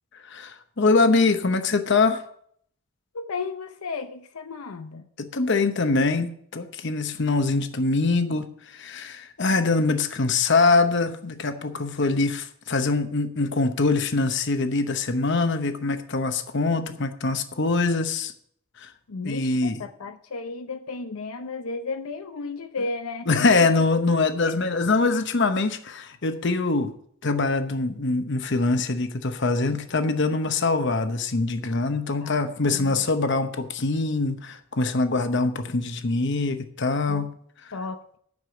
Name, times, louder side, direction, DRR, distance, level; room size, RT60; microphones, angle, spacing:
voice 1, 0.1-2.2 5.2-18.3 18.8-18.9 19.2-19.8 23.3-26.9 27.2-37.3 37.6-37.7, left 3 dB, 55° left, 0.9 m, -23 dB
voice 2, 3.1-5.0 19.1-23.7 24.5-24.6 32.2-32.3 32.6-33.0 37.1-37.3 37.7-38.2, left 3 dB, 85° left, 0.7 m, -34 dB
9.7 x 6.8 x 6.9 m
head